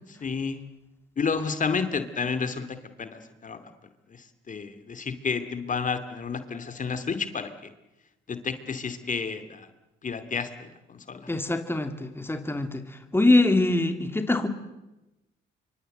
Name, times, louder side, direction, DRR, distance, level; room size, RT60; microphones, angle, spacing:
voice 1, 0.2-0.6 1.2-3.6 4.1-7.5 8.3-9.7 10.0-11.3, left 5 dB, 40° left, 10 dB, 2.5 m, -31 dB
voice 2, 11.3-14.5, left 2 dB, 10° left, 7 dB, 2.7 m, -24 dB
27.0 x 24.5 x 7.9 m, 0.98 s
cardioid pair, 90°, 20 cm